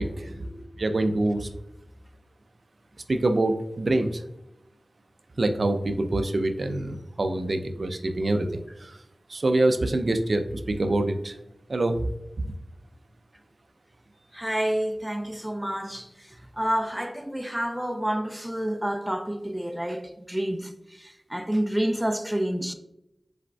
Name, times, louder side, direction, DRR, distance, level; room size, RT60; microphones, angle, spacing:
voice 1, 0.0-0.7 10.9-11.0 14.3-22.7, right 1 dB, 10° right, 0.5 m, -29 dB
voice 2, 0.8-1.5 3.1-4.2 5.4-8.5 8.8-9.0 9.3-11.3 11.7-12.1 12.4-12.5, right 2 dB, 70° right, 0.4 m, -25 dB
4.9 x 4.1 x 2.2 m
wide cardioid pair, 50°, 0 cm